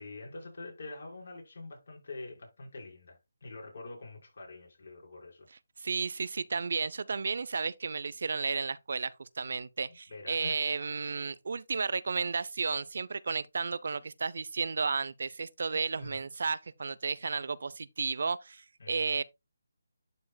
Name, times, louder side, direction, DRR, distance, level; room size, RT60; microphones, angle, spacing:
voice 1, 0.0-5.5 10.1-10.6 15.7-16.2 18.8-19.1, left 2 dB, 65° left, 5.1 m, -46 dB
voice 2, 5.8-19.2, right 4 dB, 60° right, 0.5 m, -33 dB
11.5 x 4.8 x 2.3 m
hypercardioid pair, 165°, 0 cm